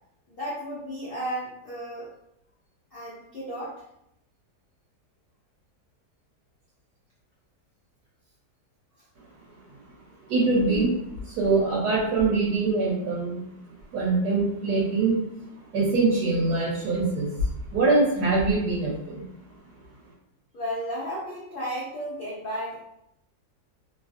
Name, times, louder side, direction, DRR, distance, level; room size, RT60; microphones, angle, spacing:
voice 1, 0.3-2.1 2.9-3.8 20.5-22.8, equal, 70° left, -6 dB, 0.5 m, -33 dB
voice 2, 10.3-10.9 11.2-13.4 13.9-15.2 15.7-19.2, right 3 dB, 90° right, -5 dB, 1.3 m, -23 dB
3.0 x 2.5 x 2.4 m, 0.80 s
omnidirectional pair, 1.7 m